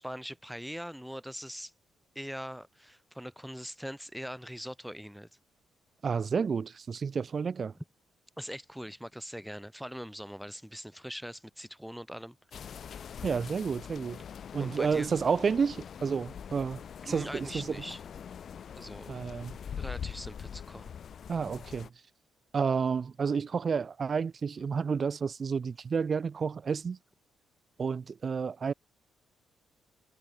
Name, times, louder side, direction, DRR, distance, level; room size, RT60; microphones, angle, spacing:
voice 1, 0.0-1.7 2.1-5.3 8.4-12.4 14.6-15.1 17.0-18.0 18.7-19.1 19.8-20.9, equal, ahead, 4.2 m, -42 dB
voice 2, 6.0-7.7 13.2-14.2 14.5-16.8 17.1-17.8 19.1-19.5 21.3-21.9 22.5-27.0 27.8-28.7, right 6 dB, 45° right, 3.9 m, -30 dB
sound 1, 12.5-21.9, left 8 dB, 55° left, 2.5 m, -43 dB
cardioid pair, 85°, 0 cm